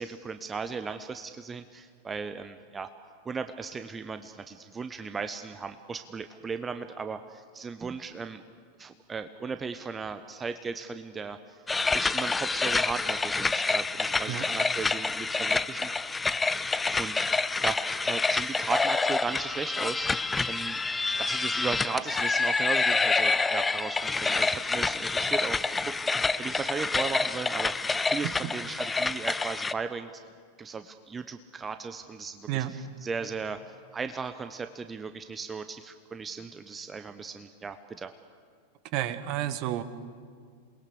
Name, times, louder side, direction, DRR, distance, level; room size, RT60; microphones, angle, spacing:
voice 1, 0.0-2.9 3.2-8.4 8.8-11.6 11.9-15.9 17.0-20.8 21.2-30.2 30.6-38.1, right 5 dB, 15° right, 10 dB, 0.8 m, -36 dB
sound 1, 11.7-29.7, left 3 dB, 10° left, 0.6 m, -27 dB
voice 2, 38.9-39.8, right 13 dB, 40° right, 13 dB, 1.3 m, -30 dB
28.0 x 21.0 x 7.0 m, 2.1 s
figure-of-eight pair, 90°, 0 cm